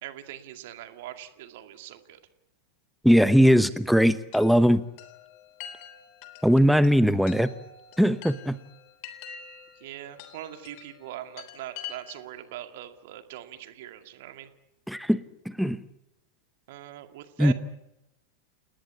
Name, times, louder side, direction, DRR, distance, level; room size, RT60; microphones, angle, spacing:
voice 1, 0.0-2.2 9.8-14.5 16.7-17.5, right 13 dB, 50° right, 7 dB, 2.2 m, -41 dB
voice 2, 3.0-4.8 6.4-7.5 8.0-8.6 14.9-15.2 15.6-15.8 17.4-17.5, equal, ahead, 15 dB, 1.0 m, -20 dB
Chime, 4.3-12.4, left 8 dB, 45° left, 3.5 m, -46 dB
30.0 x 19.0 x 8.6 m, 0.87 s
figure-of-eight pair, 90°, 0 cm